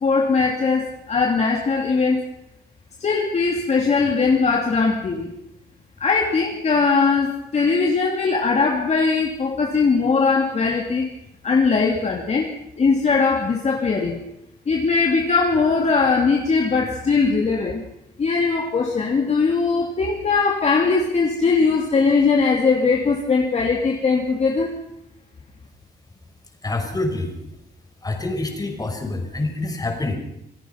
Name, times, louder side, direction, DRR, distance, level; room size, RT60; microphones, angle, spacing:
voice 1, 0.0-2.2 3.0-5.3 6.0-11.1 11.4-14.2 14.7-17.8 18.2-24.7, left 4 dB, 40° left, 0 dB, 2.7 m, -20 dB
voice 2, 26.6-27.3 28.0-30.2, left 2 dB, 20° left, 4 dB, 5.5 m, -26 dB
27.5 x 17.0 x 5.8 m, 0.84 s
wide cardioid pair, 140°, 17 cm